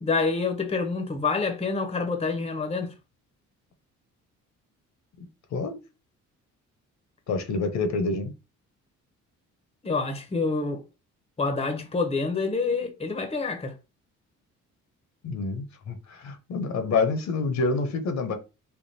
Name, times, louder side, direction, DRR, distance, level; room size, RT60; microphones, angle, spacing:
voice 1, 0.0-2.9 9.8-10.8 11.4-13.7, left 4 dB, 20° left, 0.9 m, -27 dB
voice 2, 7.3-8.3 15.2-18.3, left 3 dB, 65° left, 1.0 m, -27 dB
3.6 x 2.2 x 4.1 m
cardioid pair, 90°, 30 cm